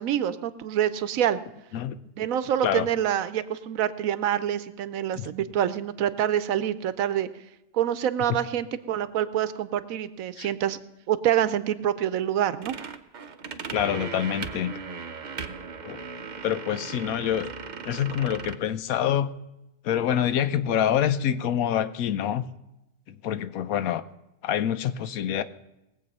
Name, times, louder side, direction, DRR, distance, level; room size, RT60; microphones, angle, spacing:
voice 1, 0.0-1.4 2.2-7.3 7.7-10.8 11.1-12.8, right 10 dB, 80° right, 14 dB, 1.1 m, -26 dB
sound 1, 12.6-18.6, right 5 dB, 45° right, 0.7 m, -37 dB
voice 2, 13.7-14.8 15.8-16.0 16.4-17.5 17.8-19.3 19.8-22.4 23.1-24.0 24.4-25.4, left 10 dB, 85° left, 14 dB, 1.1 m, -26 dB
19.5 x 7.8 x 5.4 m, 0.94 s
omnidirectional pair, 1.4 m